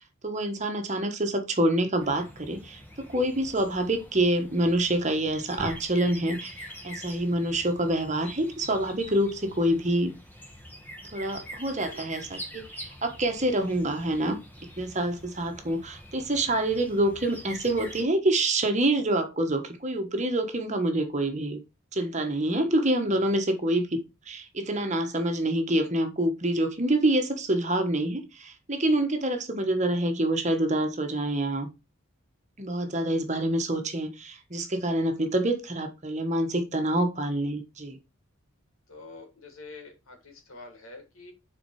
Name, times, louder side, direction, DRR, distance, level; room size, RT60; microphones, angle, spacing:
voice 1, 0.2-10.1 11.1-14.4 14.8-21.6 21.9-23.9 24.3-31.7 32.6-38.0, right 1 dB, 35° right, 1.3 m, -26 dB
sound 1, 2.0-18.0, equal, 10° left, 1.3 m, -44 dB
voice 2, 38.9-41.3, left 3 dB, 85° left, 2.7 m, -46 dB
7.1 x 4.5 x 4.7 m
head